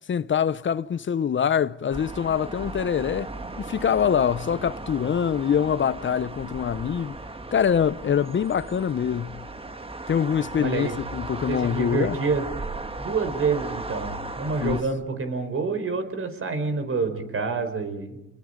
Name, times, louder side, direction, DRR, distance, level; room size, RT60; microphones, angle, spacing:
voice 1, 0.1-3.3 3.6-7.2 7.5-9.4 10.1-12.2 14.6-14.8, left 8 dB, 40° left, 0.8 m, -24 dB
sound 1, 1.9-14.8, right 2 dB, 20° right, 1.5 m, -36 dB
voice 2, 10.6-10.9 11.5-12.5 13.0-18.2, right 4 dB, 45° right, 4.9 m, -27 dB
30.0 x 21.5 x 5.3 m
cardioid pair, 90°, 30 cm